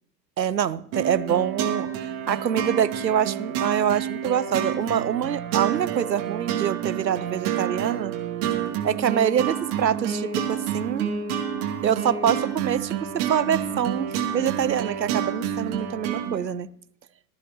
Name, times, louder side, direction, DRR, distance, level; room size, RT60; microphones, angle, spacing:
voice 1, 0.4-1.9 2.3-8.1 8.8-11.1 11.8-16.7, right 8 dB, 90° right, 19 dB, 0.6 m, -25 dB
sound 1, 0.9-16.4, right 9 dB, 45° right, 2.4 m, -29 dB
17.0 x 14.0 x 2.8 m, 0.74 s
figure-of-eight pair, 85°, 49 cm